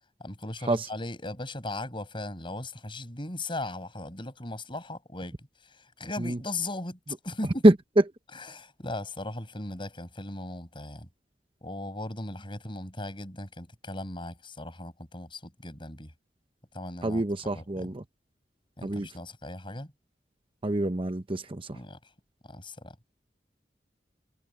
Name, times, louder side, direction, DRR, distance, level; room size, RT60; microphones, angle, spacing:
voice 1, 0.2-5.4 5.6-7.7 8.3-11.1 11.6-16.1 16.7-17.9 18.8-19.9 21.7-22.0 22.4-23.0, left 2 dB, 30° left, 6.7 m, -38 dB
voice 2, 17.0-18.0 18.8-19.1 20.6-21.6, right 1 dB, 30° right, 0.8 m, -24 dB
head